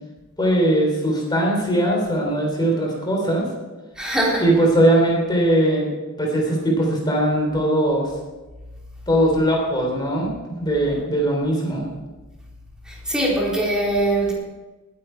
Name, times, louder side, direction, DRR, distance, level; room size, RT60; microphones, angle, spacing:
voice 1, 0.4-3.4 4.4-5.9 6.2-8.1 9.1-10.3 10.6-11.9, right 1 dB, 20° left, -1 dB, 3.4 m, -20 dB
voice 2, 4.0-4.4 12.9-14.3, right 1 dB, 5° right, -4 dB, 3.7 m, -22 dB
19.5 x 9.5 x 4.5 m, 1.2 s
head